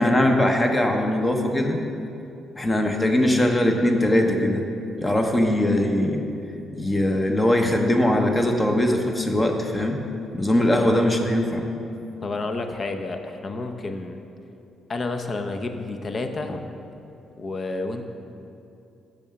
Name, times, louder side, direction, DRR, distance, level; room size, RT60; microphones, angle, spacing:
voice 1, 0.0-1.8 2.6-4.6 5.0-6.2 6.7-10.0 10.3-11.6, left 1 dB, 20° left, 3 dB, 1.0 m, -21 dB
voice 2, 10.5-10.9 12.2-14.2 14.9-16.6 17.4-18.0, left 3 dB, 40° left, 6 dB, 0.8 m, -30 dB
7.0 x 6.5 x 7.0 m, 2.7 s
cardioid pair, 90°, 0 cm